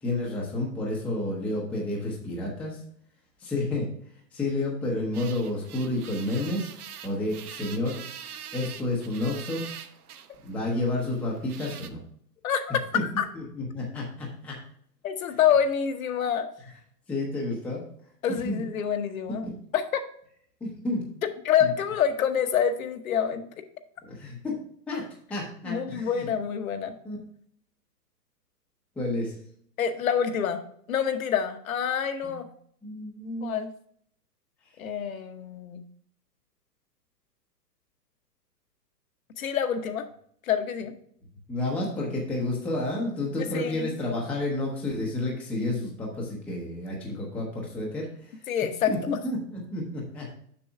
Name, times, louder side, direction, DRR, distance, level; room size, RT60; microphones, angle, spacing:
voice 1, 0.0-2.8 3.4-3.9 4.3-6.7 7.0-8.0 8.5-9.7 10.4-12.0 12.9-14.6 17.1-17.8 18.4-18.6 19.4-19.5 20.6-21.0 21.6-21.7 24.1-24.5 24.9-25.0 25.3-26.3 27.0-27.2 29.0-29.3 32.2-32.4 32.8-33.6 41.5-48.4 49.1-50.4, left 2 dB, 5° left, -3 dB, 0.7 m, -30 dB
sound 1, 5.1-11.9, right 9 dB, 65° right, 0.9 m, -44 dB
voice 2, 12.4-13.2 15.0-16.5 18.2-19.5 19.7-20.0 21.4-23.4 25.6-27.0 29.8-30.6 30.9-32.4 33.4-33.7 34.8-35.8 39.4-40.1 40.4-40.9 43.5-43.9 48.5-48.9, left 8 dB, 55° left, 7 dB, 1.0 m, -26 dB
7.0 x 6.0 x 3.4 m, 0.63 s
hypercardioid pair, 145°, 49 cm